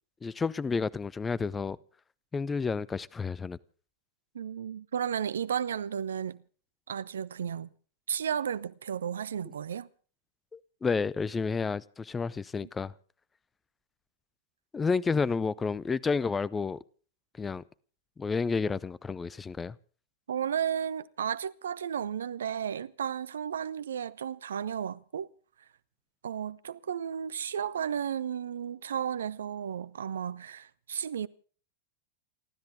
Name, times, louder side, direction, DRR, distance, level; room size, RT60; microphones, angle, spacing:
voice 1, 0.2-1.8 2.3-3.6 10.5-12.9 14.7-16.8 17.4-17.6 18.2-19.8, left 5 dB, 15° left, 0.7 m, -30 dB
voice 2, 4.3-6.4 6.9-7.7 8.1-9.9 20.3-25.3 26.2-31.3, right 8 dB, 65° right, 0.7 m, -33 dB
29.0 x 13.0 x 3.6 m
figure-of-eight pair, 90°, 0 cm